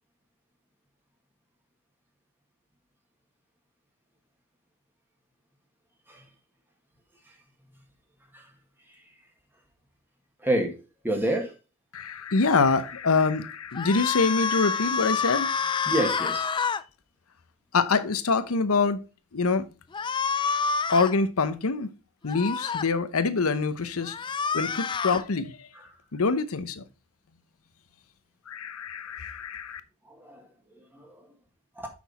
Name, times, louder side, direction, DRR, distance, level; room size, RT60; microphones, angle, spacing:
voice 1, 10.4-10.7 11.0-11.5 15.9-16.5 25.8-25.9 30.2-30.4 30.9-31.1 31.8-31.9, right 1 dB, 10° right, 1.7 m, -27 dB
voice 2, 11.9-15.5 17.7-19.0 19.3-19.6 20.9-21.9 22.2-24.2 24.5-25.6 26.1-26.8 28.5-29.8, left 4 dB, 80° left, 0.7 m, -25 dB
sound 1, 13.8-16.8 19.9-21.1 22.3-22.9 24.0-25.2, left 5 dB, 20° left, 0.3 m, -28 dB
6.1 x 6.1 x 4.1 m
head